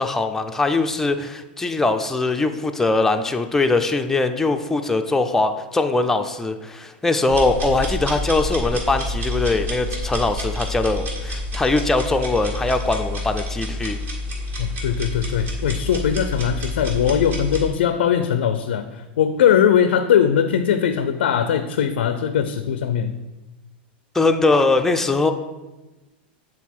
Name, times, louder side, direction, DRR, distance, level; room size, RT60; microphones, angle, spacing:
voice 1, 0.0-14.0 24.1-25.3, left 3 dB, 5° left, 6 dB, 0.4 m, -21 dB
sound 1, 7.3-17.7, left 1 dB, 35° right, 1.7 m, -28 dB
voice 2, 14.6-23.2, left 8 dB, 90° left, 10 dB, 0.4 m, -20 dB
7.2 x 3.9 x 4.4 m, 1.1 s
supercardioid pair, 130°, 6 cm